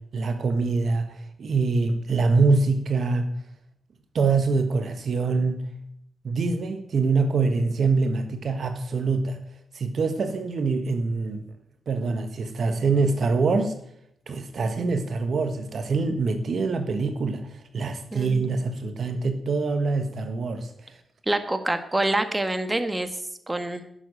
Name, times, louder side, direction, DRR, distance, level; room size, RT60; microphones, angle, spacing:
voice 1, 0.1-1.1 1.4-3.3 4.1-5.6 6.2-9.4 9.7-11.4 11.9-13.7 14.3-17.5 17.7-20.7, right 4 dB, 65° right, 8 dB, 1.4 m, -24 dB
voice 2, 21.3-23.1 23.5-23.8, right 1 dB, 20° right, 9 dB, 1.7 m, -26 dB
10.5 x 7.5 x 9.0 m, 0.73 s
supercardioid pair, 45°, 0 cm